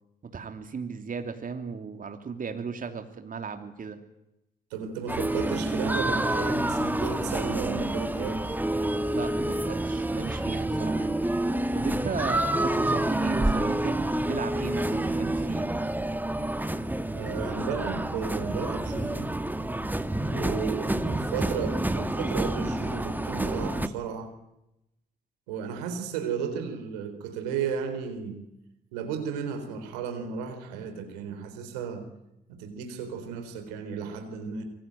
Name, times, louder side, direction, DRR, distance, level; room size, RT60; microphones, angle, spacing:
voice 1, 0.2-4.0 9.1-11.1 11.7-15.7, right 5 dB, 40° right, 6 dB, 3.1 m, -36 dB
voice 2, 4.7-8.5 17.1-19.3 20.3-24.3 25.5-28.4 28.9-32.0 32.5-34.6, right 7 dB, 80° right, 7 dB, 4.1 m, -34 dB
sound 1, 5.1-23.9, right 1 dB, 10° right, 2.1 m, -28 dB
26.0 x 23.5 x 9.2 m, 0.88 s
hypercardioid pair, 45°, 20 cm